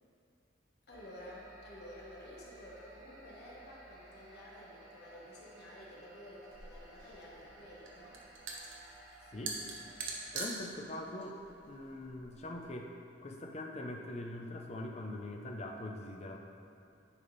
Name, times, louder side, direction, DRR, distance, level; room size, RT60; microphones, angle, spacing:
voice 1, 0.9-8.4, equal, 55° left, -4 dB, 1.1 m, -52 dB
sound 1, 0.9-10.2, right 1 dB, 20° right, 1.0 m, -56 dB
sound 2, 6.5-12.7, right 4 dB, 80° right, 0.9 m, -44 dB
voice 2, 10.3-11.4 11.7-12.9 13.2-16.4, left 1 dB, 35° left, 1 dB, 0.6 m, -42 dB
9.8 x 3.6 x 4.0 m, 2.7 s
head